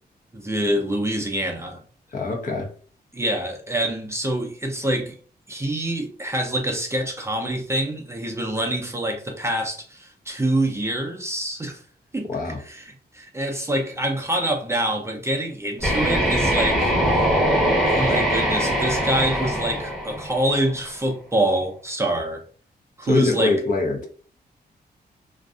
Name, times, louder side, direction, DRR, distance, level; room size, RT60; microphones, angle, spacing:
voice 1, 0.3-1.8 3.1-5.2 5.5-11.8 12.1-12.3 12.7-12.8 13.1-17.2 17.9-22.4 23.0-23.5, right 1 dB, 15° right, 0.5 m, -25 dB
voice 2, 2.1-2.7 12.3-12.6 23.0-24.1, left 3 dB, 50° left, 0.8 m, -23 dB
sound 1, 15.8-20.7, equal, ahead, 0.9 m, -22 dB
2.6 x 2.4 x 2.3 m
wide cardioid pair, 115°, 17 cm